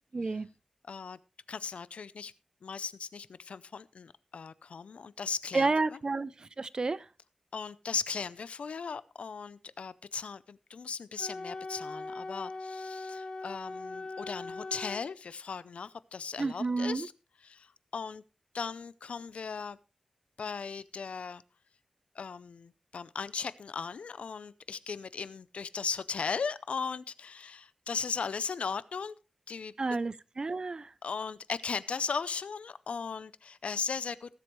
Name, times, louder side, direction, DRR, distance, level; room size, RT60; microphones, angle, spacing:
voice 1, 0.1-0.5 5.5-7.1 16.4-17.1 29.8-30.9, right 3 dB, 40° right, 0.5 m, -30 dB
voice 2, 0.9-1.2 1.5-2.3 2.6-6.0 7.5-17.1 17.4-18.2 18.5-19.8 20.4-21.4 22.2-29.1 29.5-29.7 31.0-34.3, left 5 dB, 85° left, 0.6 m, -37 dB
Wind instrument woodwind instrument, 11.2-15.1, left 3 dB, 50° left, 1.1 m, -40 dB
20.0 x 7.9 x 3.1 m
wide cardioid pair, 110°, 2 cm